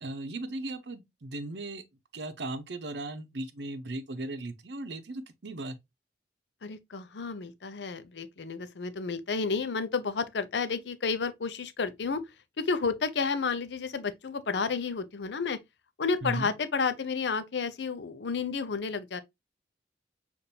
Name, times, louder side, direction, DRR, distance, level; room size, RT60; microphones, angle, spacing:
voice 1, 0.0-1.8 2.1-5.8 16.2-16.5, right 2 dB, 80° right, 0.7 m, -37 dB
voice 2, 6.6-12.2 12.6-15.6 16.0-19.2, left 5 dB, 80° left, 0.6 m, -31 dB
6.8 x 2.6 x 2.7 m
head